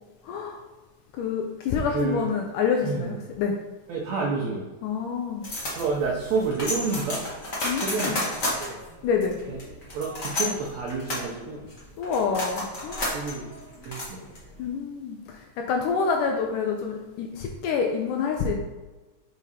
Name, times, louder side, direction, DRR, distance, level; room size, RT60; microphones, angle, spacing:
voice 1, 0.2-0.6 1.2-3.6 4.8-5.5 7.6-8.1 9.0-9.4 12.0-13.2 14.6-18.6, left 6 dB, 80° left, 2 dB, 1.9 m, -27 dB
voice 2, 1.8-2.3 2.8-3.1 3.9-4.7 5.7-7.2 7.8-8.8 9.5-9.6 9.9-11.6 13.1-13.4 13.8-14.2, right 4 dB, 85° right, -2 dB, 1.5 m, -29 dB
sound 1, 5.4-14.6, left 1 dB, 50° left, 0.9 m, -32 dB
5.8 x 4.8 x 4.1 m, 1.2 s
omnidirectional pair, 4.2 m